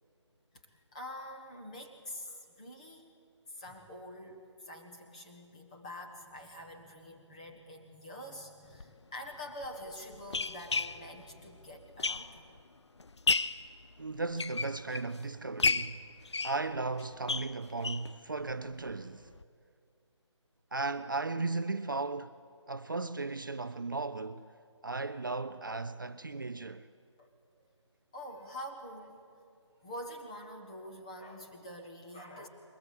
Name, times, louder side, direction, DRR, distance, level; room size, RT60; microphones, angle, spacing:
voice 1, 0.7-3.1 3.5-12.5 27.2-27.3 28.1-29.2 29.8-32.5, left 1 dB, 15° left, 1.4 m, -46 dB
sound 1, 8.7-8.8 9.6-12.6 13.0-13.7 14.2-15.2 15.6-18.1 18.5-18.6 18.9-19.0 19.3-19.4, left 4 dB, 65° left, 0.7 m, -33 dB
voice 2, 14.0-16.0 16.4-19.3 20.7-22.3 22.7-24.4 24.8-26.9, right 3 dB, 40° right, 0.5 m, -36 dB
22.0 x 20.0 x 8.4 m
figure-of-eight pair, 175°, 16 cm